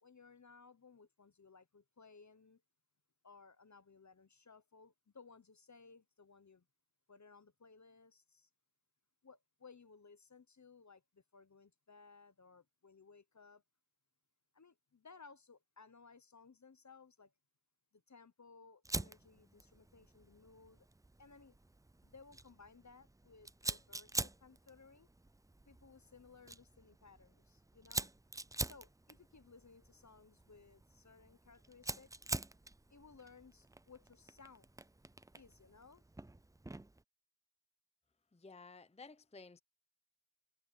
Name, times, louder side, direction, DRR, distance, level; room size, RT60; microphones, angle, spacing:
voice 1, 0.0-2.6 3.2-6.7 7.1-8.5 9.2-13.6 14.5-17.3 17.9-20.9 21.2-21.6 22.0-25.1 25.7-28.1 28.6-32.1 32.9-34.7 35.3-36.0, left 4 dB, 40° left, 0.9 m, -60 dB
Fire, 18.8-37.0, right 2 dB, 10° right, 0.4 m, -46 dB
voice 2, 38.3-39.6, left 4 dB, 15° left, 0.7 m, -54 dB
wide cardioid pair, 70°, 45 cm